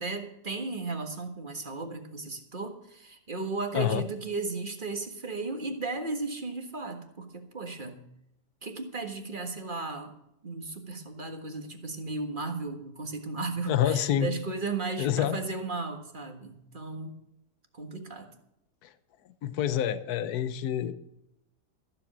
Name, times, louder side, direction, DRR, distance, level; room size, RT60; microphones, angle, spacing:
voice 1, 0.0-8.0 8.6-10.1 10.4-17.1 17.7-18.3, right 3 dB, 30° right, 5 dB, 1.6 m, -35 dB
voice 2, 3.7-4.0 13.7-14.3 15.0-15.4 19.4-20.9, left 10 dB, 70° left, 13 dB, 1.3 m, -27 dB
14.5 x 7.7 x 7.4 m, 0.81 s
omnidirectional pair, 1.8 m